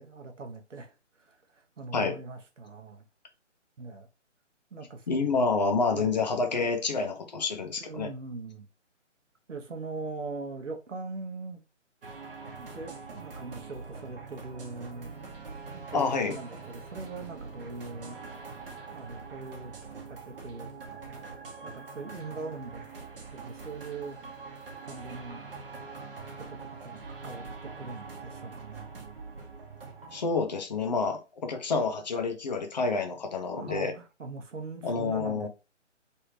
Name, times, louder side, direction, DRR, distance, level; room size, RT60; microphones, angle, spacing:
voice 1, 0.0-3.0 3.8-4.1 4.7-5.2 5.9-6.2 7.8-8.7 9.5-11.6 12.6-15.1 15.7-18.2 18.9-19.7 20.1-21.0 21.6-22.9 23.3-24.2 24.8-25.4 26.4-28.9 33.5-35.5, right 3 dB, 80° right, 0.9 m, -41 dB
voice 2, 5.1-8.1 15.9-16.4 30.1-33.9 34.8-35.5, left 4 dB, 35° left, 0.6 m, -28 dB
sound 1, 12.0-30.2, right 4 dB, 45° right, 1.0 m, -44 dB
3.3 x 2.6 x 3.1 m
figure-of-eight pair, 150°, 37 cm